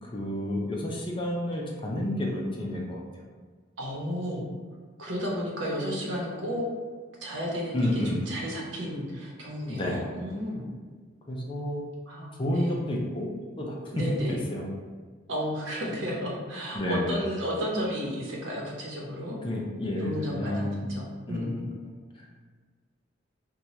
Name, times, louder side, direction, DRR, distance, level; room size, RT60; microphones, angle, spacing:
voice 1, 0.0-3.3 7.7-8.2 9.7-10.0 11.3-11.8 12.4-13.3 13.6-14.7 16.7-17.2 19.4-20.9 21.3-21.7 22.2-22.3, left 1 dB, 25° left, -2 dB, 0.5 m, -30 dB
voice 2, 3.8-4.4 5.0-6.7 7.2-10.7 12.1-12.8 13.9-14.4 15.3-19.4 20.0-21.6, equal, 75° right, -3 dB, 0.9 m, -33 dB
2.9 x 2.3 x 4.1 m, 1.5 s
head